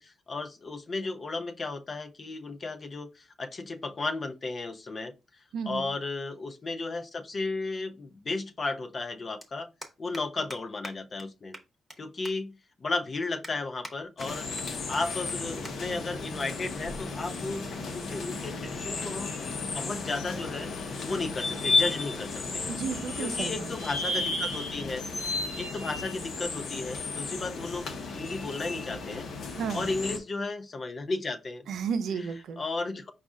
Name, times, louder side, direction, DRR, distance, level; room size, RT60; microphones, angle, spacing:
voice 1, 0.0-5.1 5.7-9.7 10.0-11.6 12.0-19.4 19.7-20.7 21.0-22.7 23.2-25.0 25.6-29.3 29.7-31.7 32.2-32.3 32.6-33.1, left 3 dB, 35° left, 0.5 m, -34 dB
voice 2, 5.5-5.9 22.7-23.7 29.6-29.9 31.7-32.6, right 6 dB, 80° right, 0.6 m, -33 dB
sound 1, 9.4-9.5 9.8-10.2 10.5-10.6 10.8-10.9 11.2-11.3 11.5-12.0 12.2-12.3 12.8-12.9 13.4-13.9 14.2-14.6 14.9-15.0 15.3-15.4 15.6-15.7 16.1-16.3 17.1-17.3, equal, 5° left, 0.8 m, -43 dB
sound 2, 14.2-30.2, left 3 dB, 70° left, 0.8 m, -33 dB
5.1 x 2.4 x 3.6 m
wide cardioid pair, 140°, 0 cm